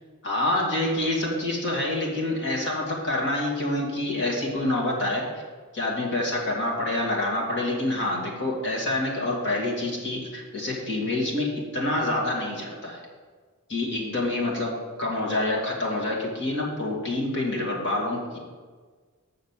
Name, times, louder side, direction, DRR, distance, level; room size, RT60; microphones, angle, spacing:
voice 1, 0.2-5.4 5.7-13.0 13.7-18.4, left 1 dB, 55° left, -2 dB, 2.2 m, -27 dB
6.5 x 6.5 x 7.3 m, 1.5 s
head